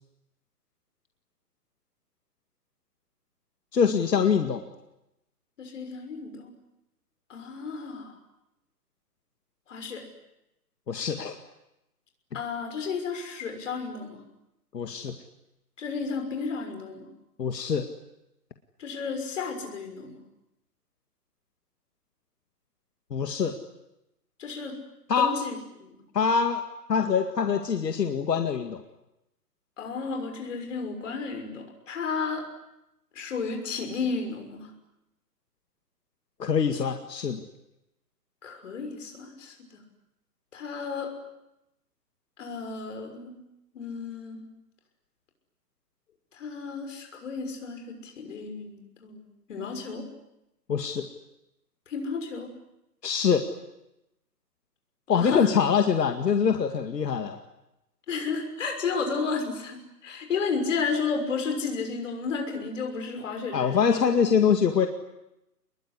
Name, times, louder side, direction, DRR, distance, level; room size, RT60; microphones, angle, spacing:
voice 1, 3.7-4.6 10.9-11.4 14.7-15.1 17.4-17.9 23.1-23.6 25.1-25.4 26.1-26.6 26.9-28.8 36.4-37.4 50.7-51.1 53.0-53.5 55.1-57.4 63.5-64.9, left 6 dB, 80° left, 6 dB, 2.3 m, -24 dB
voice 2, 5.6-6.5 7.3-8.1 9.7-10.0 12.3-14.2 15.8-17.1 18.8-20.2 24.4-24.8 25.2-25.6 25.8-26.0 29.8-32.4 33.1-34.7 38.4-39.5 40.5-41.1 42.4-43.4 43.7-44.5 46.3-49.2 49.5-50.1 51.9-52.5 55.1-55.5 58.1-64.1, left 5 dB, 50° left, 5 dB, 6.2 m, -32 dB
26.0 x 22.0 x 9.9 m, 0.89 s
hypercardioid pair, 165°, 48 cm